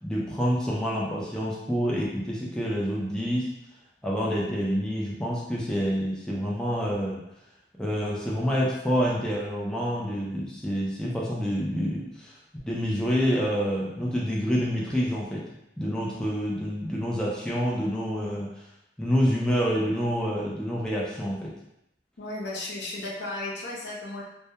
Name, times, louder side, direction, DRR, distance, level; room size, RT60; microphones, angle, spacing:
voice 1, 0.0-3.5 4.0-7.2 7.8-12.3 12.7-15.4 15.8-18.6 19.0-21.5, equal, 5° left, -5 dB, 0.4 m, -27 dB
voice 2, 22.2-24.2, left 2 dB, 75° left, -4 dB, 0.6 m, -34 dB
2.2 x 2.1 x 2.7 m, 0.83 s
head